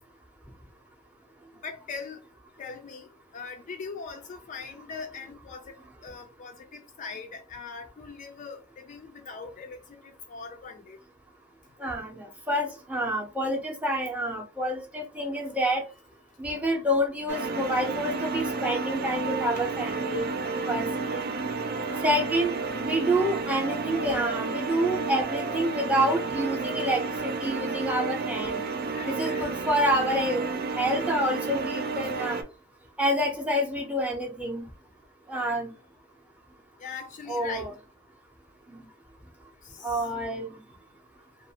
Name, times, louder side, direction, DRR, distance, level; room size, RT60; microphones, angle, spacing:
voice 1, 1.6-2.2 2.6-11.0 19.5-19.6 21.9-22.0 28.9-29.5 35.3-35.6 36.8-37.7 39.6-40.1, left 5 dB, 35° left, 0.3 m, -41 dB
voice 2, 11.8-15.8 16.4-20.3 20.7-20.8 21.1-21.3 22.0-22.5 22.8-28.6 29.1-32.4 33.0-34.7 35.3-35.7 37.3-37.7 38.7-38.9 39.8-40.6, equal, 5° right, 0.6 m, -28 dB
sound 1, 17.3-32.4, right 4 dB, 45° right, 0.4 m, -31 dB
2.5 x 2.4 x 2.8 m
head